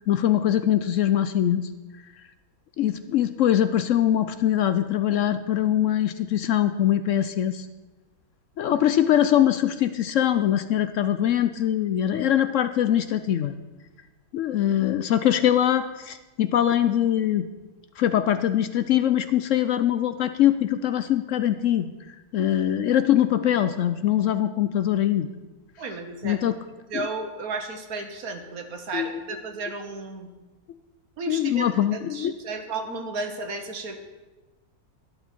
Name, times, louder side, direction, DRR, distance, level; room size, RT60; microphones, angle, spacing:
voice 1, 0.0-1.7 2.8-7.7 8.6-13.5 14.3-17.5 18.0-21.9 22.3-25.3 26.2-26.5 26.9-27.0 28.9-29.1 31.3-32.3, left 11 dB, 65° left, 11 dB, 0.8 m, -22 dB
voice 2, 25.8-26.4 26.9-30.3 31.2-34.0, right 3 dB, 70° right, 6 dB, 1.6 m, -33 dB
12.0 x 11.5 x 4.5 m, 1.2 s
omnidirectional pair, 1.6 m